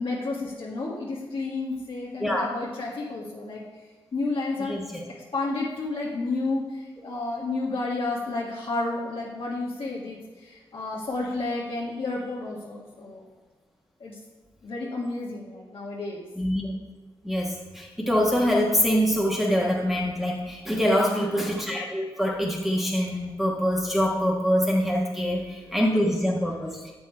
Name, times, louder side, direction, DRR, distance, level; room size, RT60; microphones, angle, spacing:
voice 1, 0.0-3.6 4.1-4.8 5.1-13.3 14.0-14.2 14.6-16.2 21.0-21.4, left 3 dB, 65° left, -4 dB, 1.4 m, -31 dB
voice 2, 4.6-5.0 16.3-16.7 17.2-26.8, equal, 5° right, -3 dB, 1.4 m, -24 dB
7.1 x 6.1 x 4.5 m, 1.3 s
cardioid pair, 50°, 10 cm